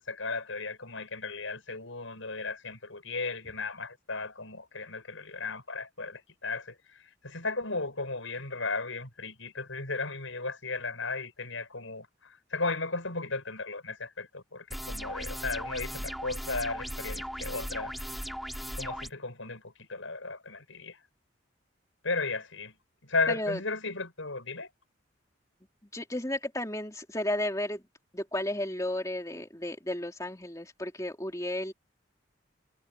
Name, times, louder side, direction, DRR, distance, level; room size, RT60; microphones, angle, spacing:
voice 1, 0.0-17.9 18.7-21.0 22.0-22.8 23.0-24.7, left 3 dB, 80° left, 6.2 m, -35 dB
sound 1, 14.7-19.1, equal, ahead, 4.7 m, -37 dB
voice 2, 23.3-23.6 25.9-27.8 28.1-31.7, left 1 dB, 15° left, 3.4 m, -33 dB
head